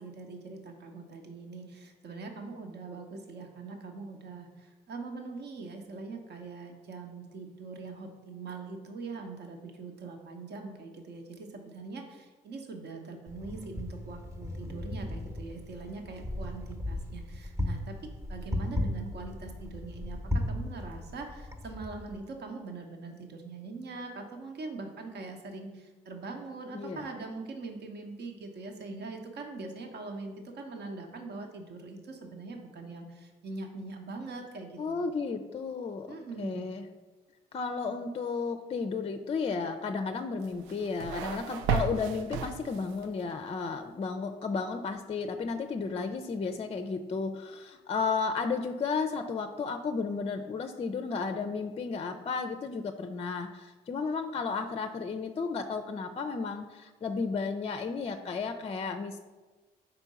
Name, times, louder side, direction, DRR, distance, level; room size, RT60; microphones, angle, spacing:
voice 1, 0.0-18.0 18.3-35.0 36.1-36.7, right 3 dB, 55° right, 4 dB, 1.0 m, -42 dB
Wind, 13.3-22.2, left 1 dB, 15° right, 1.0 m, -36 dB
voice 2, 26.7-27.0 34.8-36.9 37.5-59.2, left 4 dB, 30° left, 7 dB, 0.5 m, -33 dB
sound 1, 40.4-43.1, right 6 dB, 70° right, 0.4 m, -33 dB
4.5 x 4.3 x 5.3 m, 1.2 s
hypercardioid pair, 50°, 21 cm